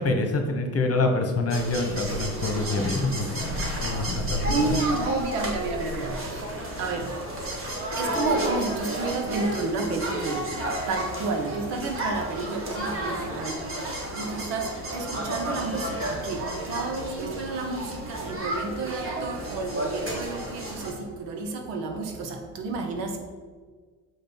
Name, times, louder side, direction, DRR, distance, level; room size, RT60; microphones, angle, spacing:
voice 1, 0.0-4.4 4.7-4.8, left 2 dB, 35° left, 5 dB, 1.3 m, -26 dB
sound 1, 1.5-20.9, right 1 dB, 30° right, 2.0 m, -31 dB
voice 2, 4.4-6.4 6.8-7.1 8.0-10.5 10.9-13.7 14.1-23.2, right 3 dB, 75° right, 4 dB, 1.3 m, -31 dB
6.4 x 5.1 x 4.5 m, 1.5 s
hypercardioid pair, 75°, 44 cm